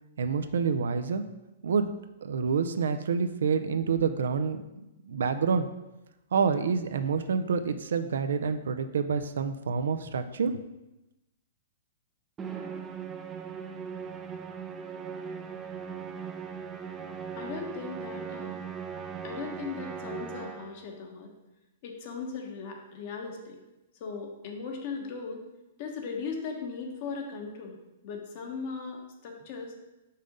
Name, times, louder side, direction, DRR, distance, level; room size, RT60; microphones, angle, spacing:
voice 1, 0.2-1.2 1.6-1.9 2.2-4.6 5.1-5.7 6.3-10.5, right 5 dB, 80° right, 9 dB, 0.5 m, -27 dB
Musical instrument, 12.4-20.9, right 6 dB, 20° right, 0.5 m, -39 dB
voice 2, 17.4-18.5 19.2-21.3 21.8-23.6 24.0-25.4 25.8-27.8 28.0-29.8, left 5 dB, 50° left, 2 dB, 1.2 m, -38 dB
5.6 x 3.6 x 5.3 m, 0.97 s
hypercardioid pair, 125°, 0 cm